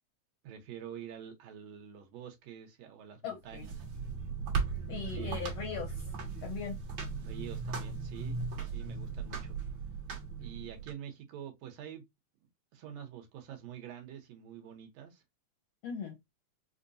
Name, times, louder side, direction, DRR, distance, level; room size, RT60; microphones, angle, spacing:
voice 1, 0.4-3.8 5.1-5.3 7.2-9.6 10.4-12.0 12.7-15.2, right 9 dB, 70° right, 1.9 m, -47 dB
voice 2, 3.2-3.6 4.9-5.9 6.4-6.8 15.8-16.1, left 7 dB, 70° left, 1.6 m, -39 dB
sound 1, 3.5-10.9, right 5 dB, 50° right, 1.7 m, -37 dB
5.3 x 2.2 x 2.5 m
omnidirectional pair, 3.5 m